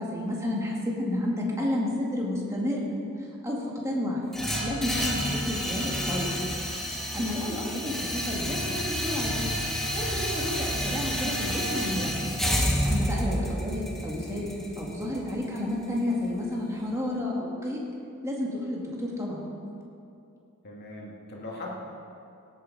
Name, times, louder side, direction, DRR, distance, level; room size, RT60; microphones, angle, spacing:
voice 1, 0.0-2.9 3.4-4.3 4.6-6.5 7.1-9.5 9.9-12.3 12.8-17.8 18.2-19.4, left 1 dB, 15° right, -3 dB, 2.0 m, -31 dB
sound 1, 4.3-16.4, equal, ahead, 1.3 m, -30 dB
voice 2, 7.2-7.6 13.1-13.9 20.6-21.7, left 2 dB, 50° left, -3 dB, 2.4 m, -42 dB
17.5 x 8.7 x 4.1 m, 2.6 s
head